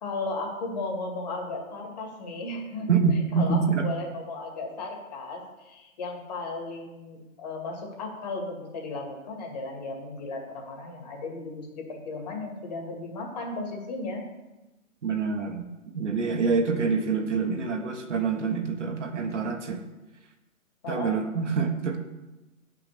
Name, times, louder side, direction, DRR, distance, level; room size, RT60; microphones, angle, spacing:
voice 1, 0.0-3.0 3.3-14.2 20.8-21.1, left 3 dB, 30° left, 0 dB, 2.2 m, -35 dB
voice 2, 2.9-3.9 15.0-19.8 20.9-22.0, right 5 dB, 55° right, 4 dB, 1.4 m, -26 dB
9.0 x 5.9 x 6.9 m, 1.0 s
hypercardioid pair, 170°, 43 cm